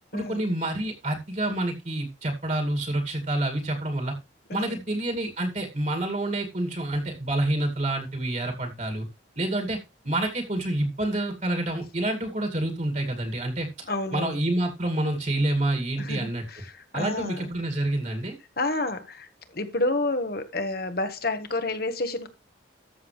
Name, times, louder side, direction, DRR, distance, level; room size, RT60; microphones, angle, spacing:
voice 1, 0.1-4.1 4.5-9.1 9.4-9.8 10.0-13.9 14.1-16.4 16.9-18.4, right 1 dB, 40° right, 2.3 m, -28 dB
voice 2, 13.9-14.4 16.0-17.5 18.6-22.3, left 2 dB, 50° left, 1.4 m, -30 dB
13.5 x 6.9 x 3.2 m
head